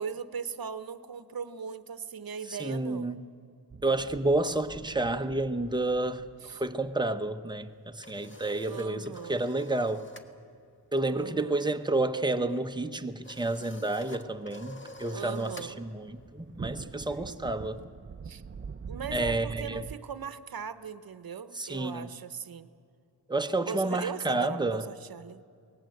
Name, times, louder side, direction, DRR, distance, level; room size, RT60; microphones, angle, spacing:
voice 1, 0.0-3.1 6.4-6.6 8.7-9.5 11.1-11.6 15.1-15.8 18.2-18.4 18.8-22.7 23.6-25.4, right 7 dB, 60° right, 13 dB, 1.0 m, -39 dB
voice 2, 2.5-3.2 3.8-10.1 10.9-17.8 19.1-19.8 21.5-22.1 23.3-24.9, right 2 dB, 10° right, 6 dB, 1.0 m, -30 dB
sound 1, 3.7-7.6 14.5-19.9, right 5 dB, 30° right, 0.6 m, -44 dB
sound 2, 7.6-10.3 10.6-10.9 11.2-17.8, left 1 dB, 30° left, 1.6 m, -49 dB
23.5 x 18.5 x 7.9 m, 2.3 s
wide cardioid pair, 80°, 40 cm